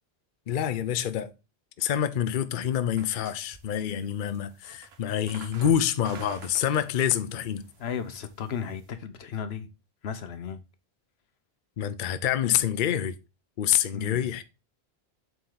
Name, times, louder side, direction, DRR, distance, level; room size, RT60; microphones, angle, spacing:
voice 1, 0.5-1.3 1.8-7.6 11.8-13.2 13.6-14.4, left 10 dB, 60° left, 0.7 m, -27 dB
sound 1, 3.0-8.9, right 5 dB, 75° right, 1.3 m, -48 dB
voice 2, 7.8-9.7 10.0-10.6 13.9-14.3, left 7 dB, 85° left, 1.1 m, -35 dB
7.7 x 4.1 x 3.9 m
omnidirectional pair, 1.0 m